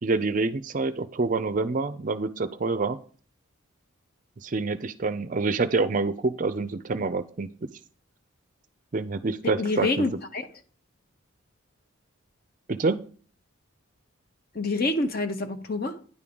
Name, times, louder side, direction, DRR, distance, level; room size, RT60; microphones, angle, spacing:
voice 1, 0.0-3.0 4.4-7.7 8.9-10.1 12.7-13.0, right 3 dB, 40° right, 0.4 m, -27 dB
voice 2, 9.4-10.5 14.5-16.0, left 2 dB, 45° left, 0.8 m, -27 dB
9.9 x 3.6 x 6.9 m
head